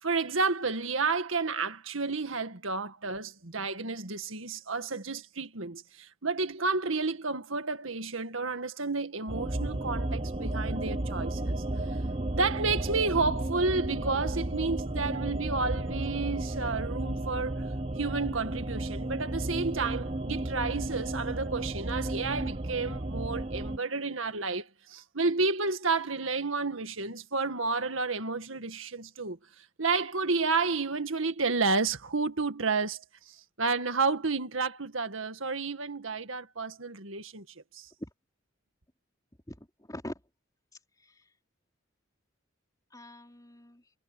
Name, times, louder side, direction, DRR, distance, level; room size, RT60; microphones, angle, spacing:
voice 1, 0.0-11.5 12.3-17.6 18.0-29.4 29.8-37.5 37.7-37.9, right 4 dB, 80° right, 1.9 m, -31 dB
sound 1, 9.3-23.8, right 1 dB, 30° right, 1.3 m, -33 dB
voice 2, 39.5-40.1 40.7-41.3 42.9-43.9, left 1 dB, 20° left, 3.9 m, -44 dB
head